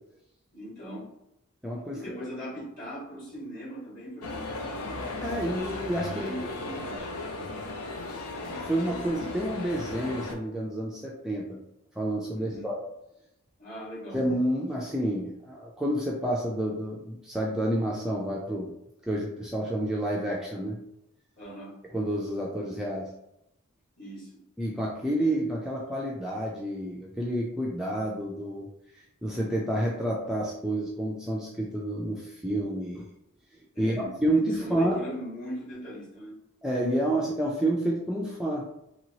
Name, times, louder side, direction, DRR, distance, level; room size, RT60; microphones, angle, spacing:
voice 1, 0.5-1.1 1.9-5.0 6.1-7.1 12.3-12.7 13.6-14.2 21.4-21.8 24.0-24.4 33.7-36.4, equal, 40° left, -6 dB, 1.4 m, -40 dB
voice 2, 1.6-2.0 5.2-6.3 8.4-11.6 12.0-12.8 14.1-18.8 19.0-20.8 21.9-23.1 24.6-28.7 29.0-33.1 33.8-35.0 36.6-38.7, right 1 dB, 5° right, -4 dB, 0.3 m, -29 dB
sound 1, 4.2-10.3, left 2 dB, 85° left, 0.5 m, -36 dB
2.9 x 2.9 x 2.8 m, 0.85 s
head